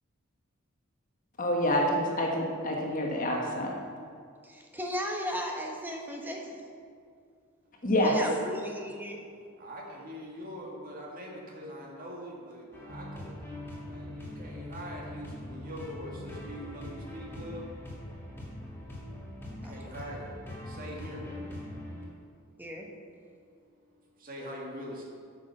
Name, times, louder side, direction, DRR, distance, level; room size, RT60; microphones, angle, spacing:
voice 1, 1.4-3.7 7.8-8.1, left 1 dB, 40° left, -1 dB, 1.3 m, -27 dB
voice 2, 4.4-6.6 8.0-9.2 19.6-19.9 22.6-22.9, equal, 10° right, 1 dB, 1.1 m, -36 dB
voice 3, 9.6-17.8 19.4-20.3 20.6-21.3 24.2-25.0, equal, 45° right, -2 dB, 2.0 m, -43 dB
sound 1, 12.7-22.0, left 1 dB, 10° left, 2.1 m, -42 dB
9.1 x 6.2 x 6.5 m, 2.3 s
head